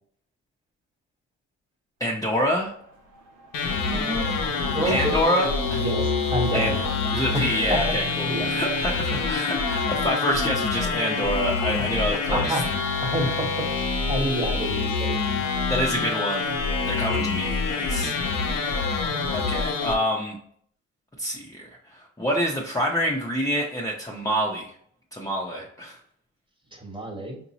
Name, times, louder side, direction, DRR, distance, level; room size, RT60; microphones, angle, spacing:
voice 1, 2.0-2.7 4.8-5.8 6.5-6.8 7.1-12.6 15.7-16.5 16.8-18.2 18.6-18.9 19.3-20.4 21.2-24.7 25.1-26.0, equal, 10° left, -3 dB, 0.7 m, -27 dB
sound 1, 2.4-9.7, right 3 dB, 90° right, 1.2 m, -45 dB
sound 2, 3.5-19.9, left 4 dB, 90° left, 0.9 m, -26 dB
voice 2, 3.9-4.4 4.7-5.1 5.7-6.8 7.7-8.0 8.2-8.5 12.3-15.2 15.6-15.7 26.7-27.4, right 1 dB, 15° right, 1 dB, 1.3 m, -29 dB
5.1 x 2.7 x 2.9 m, 0.64 s
cardioid pair, 90°, 30 cm